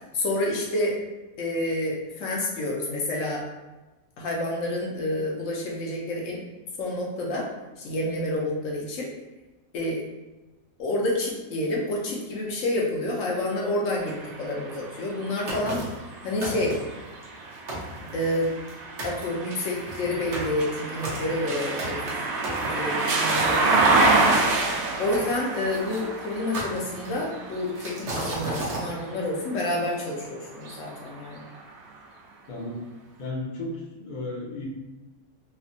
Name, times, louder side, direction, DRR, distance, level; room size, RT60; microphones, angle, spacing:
voice 1, 0.1-1.0 1.4-3.5 4.2-6.4 6.8-7.5 7.8-9.1 9.7-10.0 10.8-15.8 16.2-16.8 18.1-18.5 19.0-22.3 22.6-24.3 25.0-31.4, left 1 dB, 70° left, -2 dB, 0.9 m, -28 dB
sound 1, 14.0-29.9 30.5-31.7, right 3 dB, 85° right, 1.1 m, -28 dB
sound 2, 15.5-16.0 16.4-17.0 17.4-17.5 17.7-18.7 19.0-19.2 19.8-24.2 25.1-26.0 26.5-27.3 27.8-28.9, right 2 dB, 60° right, 1.0 m, -33 dB
voice 2, 32.5-32.8 33.2-34.7, left 2 dB, 50° left, -4 dB, 0.5 m, -34 dB
3.2 x 2.1 x 2.5 m, 1.1 s
omnidirectional pair, 1.5 m